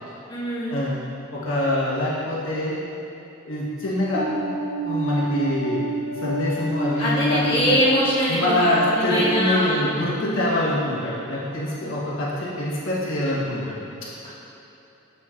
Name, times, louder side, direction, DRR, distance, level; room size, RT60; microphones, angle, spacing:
voice 1, 0.3-0.7 7.0-9.8 10.2-10.6 11.8-11.9, equal, 25° left, -9 dB, 1.4 m, -23 dB
voice 2, 1.3-2.8 3.4-4.3 4.8-7.8 8.3-14.1, left 1 dB, 75° left, -6 dB, 1.4 m, -25 dB
sound 1, 4.1-10.7, equal, 50° right, 0.6 m, -30 dB
7.1 x 6.9 x 2.5 m, 3.0 s
head